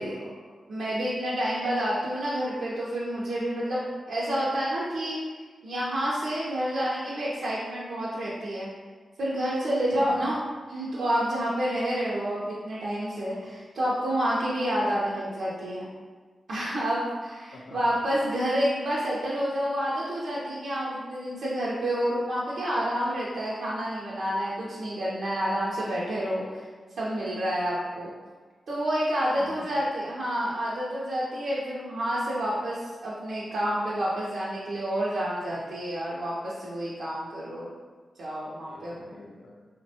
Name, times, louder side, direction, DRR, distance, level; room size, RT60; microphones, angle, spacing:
voice 1, 0.0-0.5 9.9-10.3 17.5-18.0 29.3-29.8 38.6-39.7, left 2 dB, 70° left, -1 dB, 0.5 m, -45 dB
voice 2, 0.7-5.2 5.6-8.7 9.2-10.4 10.7-15.9 16.5-26.6 27.0-28.1 28.7-37.7 38.2-38.9, equal, 75° right, -8 dB, 0.5 m, -29 dB
3.4 x 2.1 x 2.7 m, 1.5 s
wide cardioid pair, 155°, 0 cm